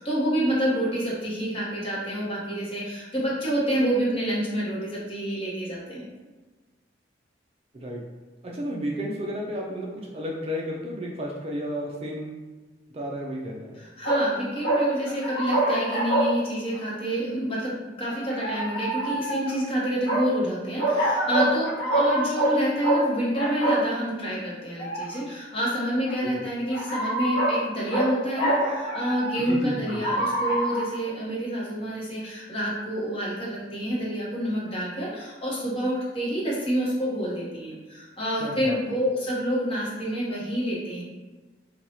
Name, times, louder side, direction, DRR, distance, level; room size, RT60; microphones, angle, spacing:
voice 1, 0.0-6.0 13.8-41.0, equal, 30° left, -6 dB, 0.9 m, -28 dB
voice 2, 8.4-12.4 12.9-13.8 26.2-26.5 29.4-30.1 38.4-38.8, equal, 30° right, -2 dB, 0.4 m, -32 dB
sound 1, 14.0-14.2 14.6-16.3 16.7-16.8 18.1-19.5 20.0-20.2 20.8-22.6 22.8-23.0 23.3-23.8 24.8-25.2 26.1-26.2 26.7-27.6 27.9-28.1 28.3-29.5 29.9-30.8, right 1 dB, 60° left, 1.0 m, -25 dB
2.9 x 2.3 x 4.0 m, 1.3 s
head